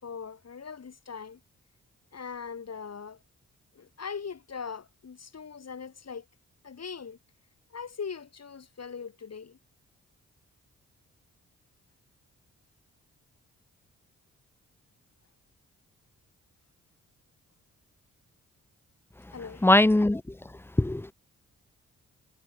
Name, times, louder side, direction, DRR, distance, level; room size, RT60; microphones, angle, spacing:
voice 1, 0.0-1.4 2.1-3.2 3.7-6.2 6.6-7.2 7.7-9.6 19.3-19.7, left 6 dB, 50° left, 2.8 m, -40 dB
voice 2, 19.6-20.2 20.8-21.1, left 1 dB, 5° left, 0.6 m, -20 dB
supercardioid pair, 45°, 32 cm